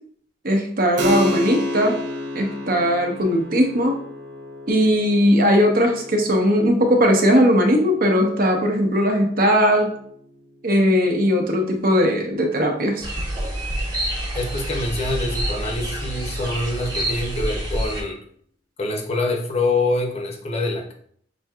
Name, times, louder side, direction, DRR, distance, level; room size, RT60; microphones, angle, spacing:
voice 1, 0.4-2.0 2.3-4.0 4.7-9.9 10.6-13.1, equal, 50° right, 3 dB, 0.8 m, -18 dB
Keyboard (musical), 1.0-11.2, equal, 85° right, 0.6 m, -32 dB
sound 1, 13.0-18.0, right 1 dB, 20° right, 0.8 m, -27 dB
voice 2, 14.3-18.2 18.8-20.9, left 2 dB, 35° left, 2 dB, 0.7 m, -25 dB
5.9 x 2.8 x 2.3 m, 0.62 s
head